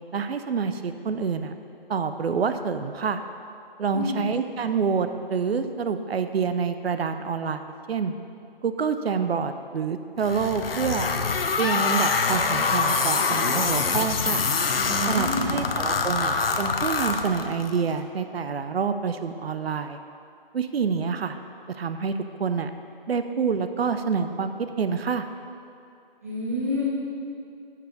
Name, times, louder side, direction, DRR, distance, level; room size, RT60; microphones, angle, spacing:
voice 1, 0.1-1.5 1.9-3.2 3.8-7.6 7.9-8.1 8.6-11.1 11.6-14.4 15.1-20.0 20.5-21.4 21.7-22.1 22.4-22.7 23.1-24.5 24.8-25.2, right 6 dB, 90° right, 9 dB, 0.5 m, -27 dB
voice 2, 3.9-4.2 14.8-15.6 26.2-26.9, equal, 15° right, -7 dB, 0.8 m, -28 dB
sound 1, 10.2-17.8, left 4 dB, 75° left, 0.6 m, -25 dB
7.3 x 4.6 x 5.2 m, 2.6 s
figure-of-eight pair, 170°, 29 cm